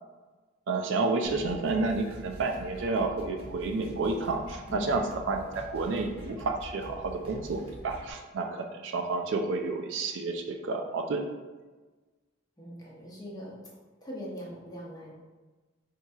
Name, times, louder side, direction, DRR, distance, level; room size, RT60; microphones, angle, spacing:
voice 1, 0.7-11.3, right 3 dB, 65° right, 4 dB, 0.3 m, -30 dB
sound 1, 1.3-8.1, equal, 30° right, 0.8 m, -46 dB
voice 2, 4.7-5.0 12.6-13.6 14.0-15.1, equal, 20° left, -4 dB, 0.7 m, -42 dB
4.4 x 2.7 x 2.3 m, 1.3 s
head